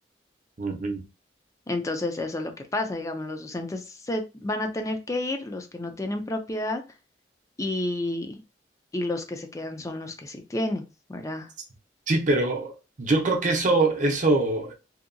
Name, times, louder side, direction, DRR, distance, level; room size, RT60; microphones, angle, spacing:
voice 1, 0.6-1.0 12.1-14.7, right 2 dB, 45° right, 0.6 m, -23 dB
voice 2, 1.7-6.8 7.6-8.4 8.9-10.8 11.1-11.5, left 1 dB, 20° left, 0.4 m, -30 dB
2.7 x 2.3 x 2.5 m
head